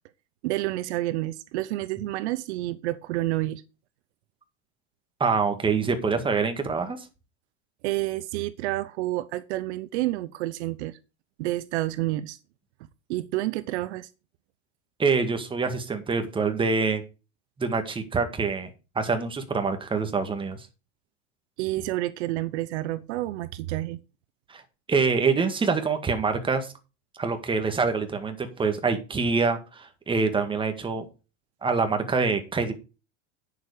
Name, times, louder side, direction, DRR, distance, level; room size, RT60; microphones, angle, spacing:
voice 1, 0.4-3.6 7.8-11.0 11.4-12.4 13.1-14.1 21.6-24.0, right 17 dB, 70° right, 0.8 m, -29 dB
voice 2, 5.2-7.0 15.0-17.0 17.6-18.7 19.0-20.6 24.5-24.6 24.9-26.7 27.2-31.1 31.6-32.7, right 4 dB, 15° right, 1.8 m, -25 dB
9.4 x 7.0 x 4.8 m
supercardioid pair, 135°, 35 cm